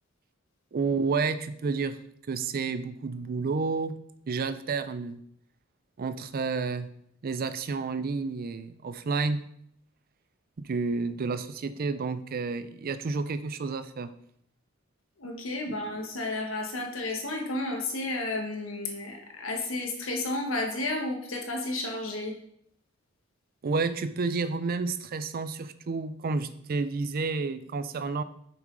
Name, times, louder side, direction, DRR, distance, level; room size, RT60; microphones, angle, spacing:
voice 1, 0.7-2.0 2.3-4.0 4.3-5.2 6.0-6.9 7.2-9.4 10.6-14.1 15.7-15.8 23.6-28.2, right 4 dB, 45° right, 13 dB, 0.4 m, -30 dB
voice 2, 15.2-22.3, left 2 dB, 75° left, 2 dB, 1.5 m, -32 dB
7.1 x 6.1 x 3.9 m, 0.69 s
head